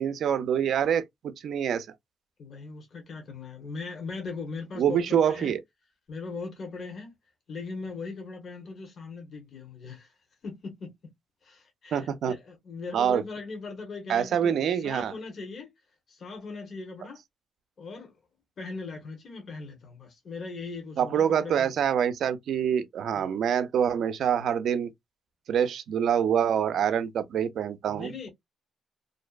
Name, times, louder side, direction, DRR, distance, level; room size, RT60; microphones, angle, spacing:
voice 1, 0.0-1.9 4.8-5.6 11.9-12.4 12.9-13.2 14.1-15.1 21.0-24.9 25.5-28.3, right 8 dB, 65° right, 0.4 m, -26 dB
voice 2, 2.4-5.5 6.1-7.1 7.5-10.1 10.4-10.9 11.4-15.7 16.1-17.2 17.8-18.1 18.6-21.8 23.2-23.4 27.9-28.3, left 4 dB, 50° left, 0.9 m, -39 dB
2.6 x 2.1 x 2.3 m
cardioid pair, 90°, 0 cm